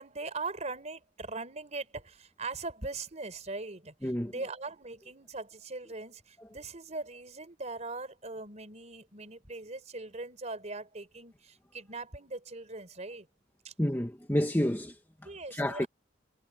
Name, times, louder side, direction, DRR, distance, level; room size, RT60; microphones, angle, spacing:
voice 1, 0.0-13.3 13.6-13.7 15.2-15.9, right 3 dB, 40° right, 4.1 m, -40 dB
voice 2, 4.0-4.3 13.8-15.0 15.5-15.9, equal, 10° left, 1.5 m, -29 dB
head